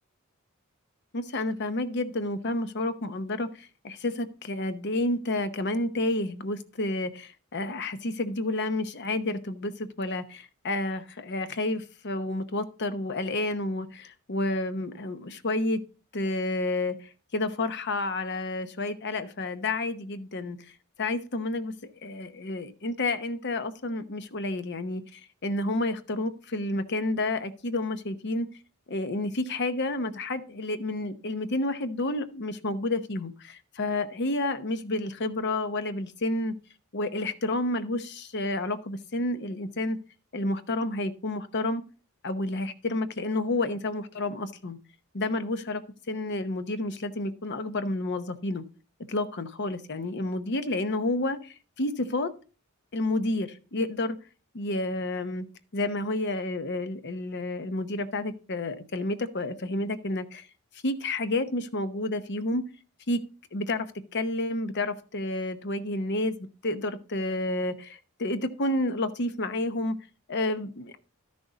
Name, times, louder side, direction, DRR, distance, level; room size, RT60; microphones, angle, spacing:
voice 1, 1.1-15.8 16.1-20.6 21.0-28.5 28.9-36.6 36.9-40.0 40.3-41.8 42.2-44.8 45.1-45.8 46.1-48.6 49.1-52.3 52.9-54.2 54.5-55.5 55.7-60.5 60.8-62.7 63.1-63.2 63.5-66.4 66.6-70.0 70.3-71.0, left 2 dB, 55° left, 11 dB, 0.9 m, -30 dB
12.5 x 6.4 x 4.0 m, 0.37 s
head